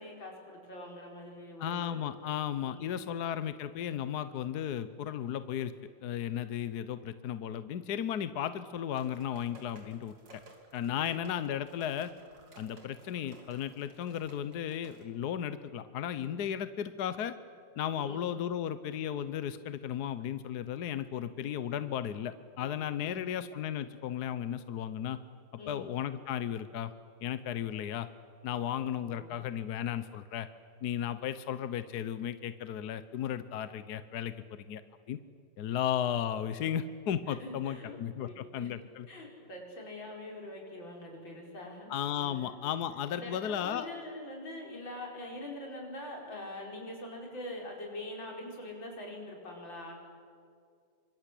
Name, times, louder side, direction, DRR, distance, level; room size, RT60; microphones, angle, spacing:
voice 1, 0.0-2.1 2.6-3.2 18.0-18.7 22.6-23.4 25.6-25.9 29.0-29.4 37.3-38.7 39.1-42.5 43.1-49.9, left 1 dB, 85° left, 0 dB, 5.9 m, -44 dB
voice 2, 1.6-5.7 6.0-10.2 10.7-12.1 12.6-17.4 17.8-25.2 25.7-26.9 27.2-28.1 28.4-30.5 30.8-34.8 35.1-35.2 35.6-39.1 41.9-43.9, left 9 dB, 65° left, 12 dB, 1.3 m, -35 dB
sound 1, 9.0-15.0, right 2 dB, 70° right, 3.7 m, -56 dB
27.0 x 25.0 x 8.4 m, 2.3 s
omnidirectional pair, 2.0 m